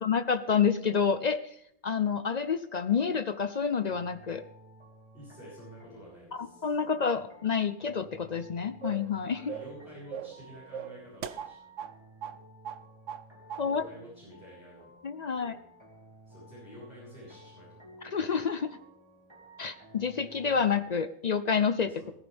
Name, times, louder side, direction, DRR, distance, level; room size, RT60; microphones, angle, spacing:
voice 1, 0.0-1.4 1.8-4.4 6.6-9.4 13.6-13.9 15.0-15.6 18.0-18.8 19.6-21.9, left 6 dB, 55° left, 12 dB, 0.4 m, -28 dB
sound 1, 3.9-20.8, right 1 dB, 20° right, 2.1 m, -55 dB
voice 2, 5.1-6.8 9.3-11.7 13.6-14.9 15.4-15.6 16.3-17.8 21.9-22.1, equal, 40° left, -8 dB, 7.1 m, -49 dB
sound 2, 8.8-9.1 9.5-9.8 10.1-10.4 10.7-11.9 12.2-12.4 12.6-13.2 13.5-13.7, right 8 dB, 65° right, 1.0 m, -39 dB
17.0 x 14.5 x 3.5 m, 0.71 s
omnidirectional pair, 1.5 m